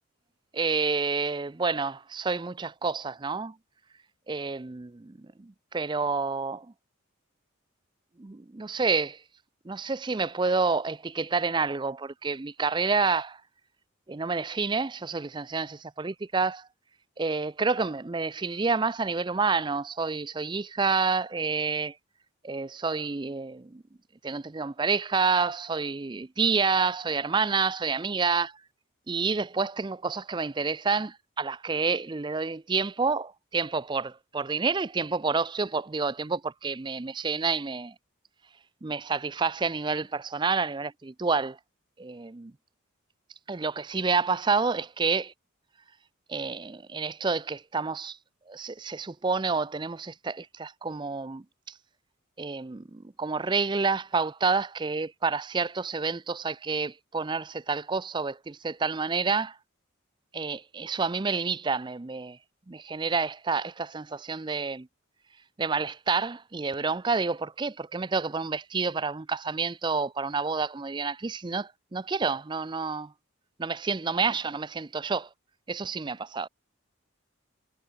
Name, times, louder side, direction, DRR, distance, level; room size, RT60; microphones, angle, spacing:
voice 1, 0.5-3.6 4.3-6.7 8.2-9.2 9.7-13.4 14.1-16.7 17.2-22.0 22.4-23.8 24.2-28.5 29.1-37.9 38.8-41.6 42.0-42.5 43.5-45.3 46.3-48.2 48.5-51.7 52.4-59.6 60.3-62.4 62.7-64.9 65.6-73.1 73.6-75.3 75.7-76.5, right 4 dB, 20° right, 0.4 m, -29 dB
head